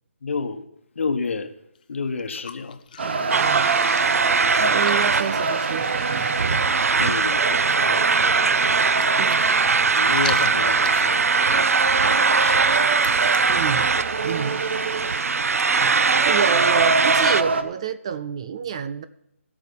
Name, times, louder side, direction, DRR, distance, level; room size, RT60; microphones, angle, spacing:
voice 1, 0.2-0.6 0.9-1.5 1.9-2.8 4.2-4.4 7.0-9.2 9.9-11.7 12.0-12.9, left 4 dB, 55° left, 9 dB, 1.2 m, -31 dB
sound 1, 1.8-1.9 2.2-6.0 6.3-6.4 6.6-7.0 7.4-8.0 8.6-13.6, left 7 dB, 35° left, 0.6 m, -40 dB
sound 2, 3.0-17.6, right 4 dB, 50° right, 1.0 m, -27 dB
voice 2, 3.3-3.8 4.6-6.7 9.2-9.5 13.5-13.9 14.2-14.6 15.7-19.1, right 8 dB, 25° right, 13 dB, 0.4 m, -29 dB
sound 3, 3.3-17.4, right 4 dB, 85° right, 0.4 m, -21 dB
16.5 x 6.4 x 5.4 m, 0.79 s
hypercardioid pair, 165°, 8 cm